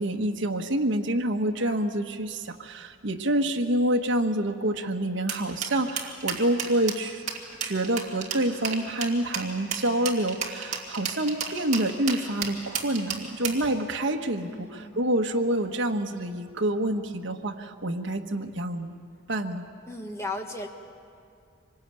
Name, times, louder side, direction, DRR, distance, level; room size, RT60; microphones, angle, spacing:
voice 1, 0.0-7.2 7.6-18.9 19.3-19.7, right 1 dB, 65° right, 3 dB, 1.3 m, -27 dB
sound 1, 5.3-13.7, right 6 dB, 35° right, 2.4 m, -32 dB
voice 2, 14.3-15.0 19.9-20.7, left 2 dB, 15° left, 3 dB, 1.6 m, -36 dB
25.0 x 20.0 x 8.9 m, 2.4 s
head